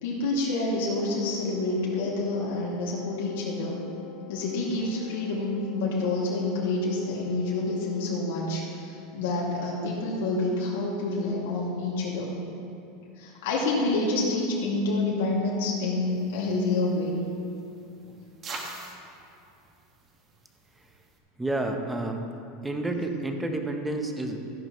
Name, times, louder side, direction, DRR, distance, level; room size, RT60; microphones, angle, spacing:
voice 1, 0.0-3.8 4.3-12.3 13.2-17.1, left 2 dB, 80° left, -5 dB, 2.2 m, -28 dB
Wind instrument woodwind instrument, 0.6-8.8, left 9 dB, 50° left, 1.4 m, -47 dB
sound 1, 16.1-21.2, right 2 dB, 25° right, 1.1 m, -45 dB
voice 2, 21.4-22.3 22.6-24.4, right 2 dB, 5° right, 4 dB, 0.7 m, -29 dB
14.0 x 10.5 x 3.0 m, 2.7 s
supercardioid pair, 170°, 0 cm